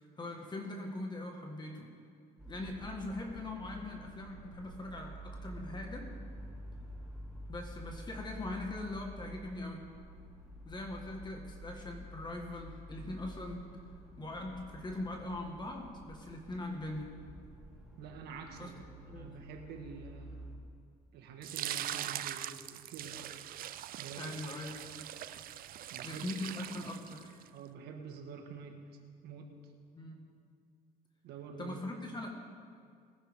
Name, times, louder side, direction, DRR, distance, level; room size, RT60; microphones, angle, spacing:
voice 1, 0.2-1.9 2.5-6.1 7.5-9.9 10.6-13.7 14.2-17.2 18.6-18.7 19.1-19.3 24.2-25.1 26.0-27.4 29.9-30.3 31.6-32.3, left 2 dB, 25° left, 1 dB, 1.6 m, -41 dB
sound 1, 2.4-20.6, right 1 dB, ahead, 2.4 m, -49 dB
voice 2, 18.0-20.5 21.1-23.4 24.0-24.4 25.9-26.3 27.5-29.6 31.2-31.8, right 5 dB, 75° right, 3 dB, 1.6 m, -47 dB
sound 2, 21.4-27.5, right 12 dB, 60° right, 0.5 m, -42 dB
20.5 x 10.0 x 3.6 m, 2.2 s
cardioid pair, 110°, 17 cm